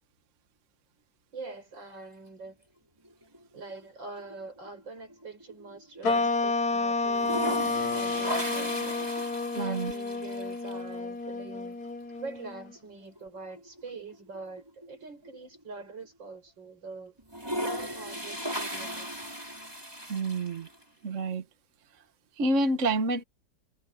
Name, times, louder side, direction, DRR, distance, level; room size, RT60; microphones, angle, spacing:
voice 1, 1.3-2.6 3.5-9.0 9.5-11.8 12.2-17.2 17.6-19.3, right 3 dB, 75° right, 6.6 m, -44 dB
sound 1, 3.0-3.8 4.2-6.2 6.4-6.5 7.0-10.8 12.2-12.3 12.7-12.8 13.2-15.6 16.0-16.1 17.2-20.8, equal, 10° right, 5.1 m, -37 dB
sound 2, 6.0-12.7, left 3 dB, 55° left, 1.7 m, -30 dB
voice 2, 9.6-9.9 20.1-20.7 21.0-21.4 22.4-23.2, right 2 dB, 45° right, 1.7 m, -28 dB
omnidirectional pair, 2.0 m